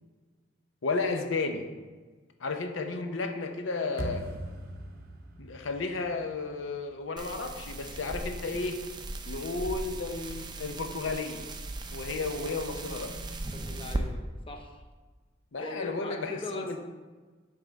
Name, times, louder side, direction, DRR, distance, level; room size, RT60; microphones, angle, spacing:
voice 1, 0.8-1.7 2.4-4.3 5.4-8.8 9.3-11.5 11.9-13.1 15.5-16.8, left 3 dB, 85° left, 5 dB, 0.7 m, -33 dB
sound 1, 4.0-7.1, right 1 dB, 50° right, 0.7 m, -40 dB
sound 2, 7.2-14.0, right 2 dB, 25° right, 0.4 m, -38 dB
voice 2, 13.5-14.8 15.6-16.8, left 3 dB, 30° left, 3 dB, 0.6 m, -40 dB
9.4 x 3.5 x 4.0 m, 1.4 s
head